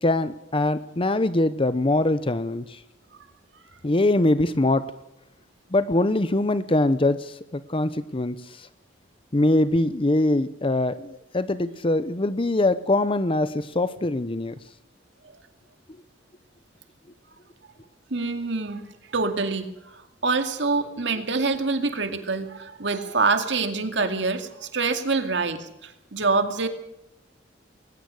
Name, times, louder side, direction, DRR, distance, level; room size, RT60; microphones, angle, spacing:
voice 1, 0.0-2.8 3.8-4.9 5.7-8.7 9.3-14.5, left 2 dB, 30° left, 13 dB, 0.8 m, -23 dB
voice 2, 18.1-18.8 19.1-26.7, right 3 dB, 65° right, 7 dB, 2.3 m, -26 dB
21.5 x 19.0 x 6.4 m, 0.84 s
head